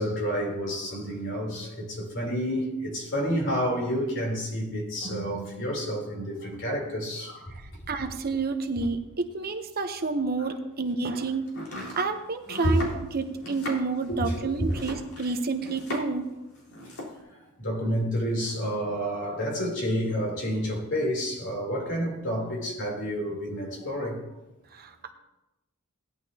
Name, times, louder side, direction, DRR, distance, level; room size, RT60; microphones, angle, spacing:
voice 1, 0.0-7.5 8.8-8.9 12.6-12.8 14.1-14.3 14.6-14.7 17.6-24.2, equal, 55° left, 3.5 m, -29 dB
voice 2, 7.5-11.5 12.0-12.9 13.1-16.2 24.7-25.1, right 4 dB, 45° right, 0.9 m, -29 dB
Domestic sounds home sounds, 11.5-16.3 16.5-17.2, left 1 dB, 75° left, 4.0 m, -38 dB
17.0 x 10.5 x 2.9 m
head